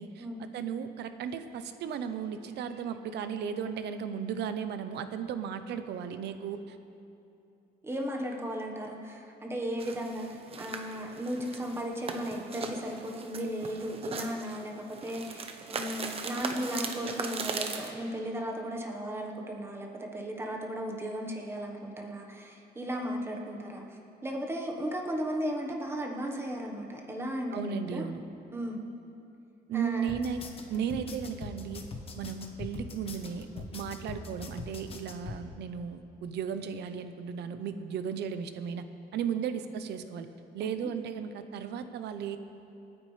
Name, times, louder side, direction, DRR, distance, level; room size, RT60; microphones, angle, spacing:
voice 1, 0.5-6.8 27.5-28.2 29.7-30.4 30.7-31.8 32.2-38.8 39.1-40.3 40.5-42.4, right 7 dB, 75° right, 10 dB, 0.8 m, -35 dB
voice 2, 7.8-28.1 28.5-28.8 29.7-30.1 39.4-39.5 40.8-40.9, equal, 15° right, 1 dB, 1.3 m, -36 dB
sound 1, 9.8-17.9, right 4 dB, 35° right, 0.9 m, -39 dB
sound 2, 30.1-35.4, left 4 dB, 35° left, 1.0 m, -42 dB
27.0 x 9.7 x 3.3 m, 2.7 s
cardioid pair, 175°, 17 cm